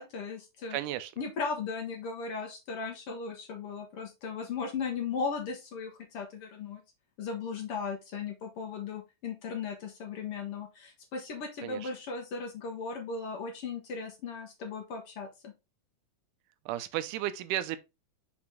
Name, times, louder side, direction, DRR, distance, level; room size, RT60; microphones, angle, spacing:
voice 1, 0.0-0.8 1.2-6.8 7.2-15.5, left 5 dB, 60° left, 1.8 m, -37 dB
voice 2, 0.7-1.1 11.6-11.9 16.7-17.8, right 13 dB, 85° right, 2.2 m, -33 dB
6.0 x 4.8 x 3.5 m
omnidirectional pair, 3.5 m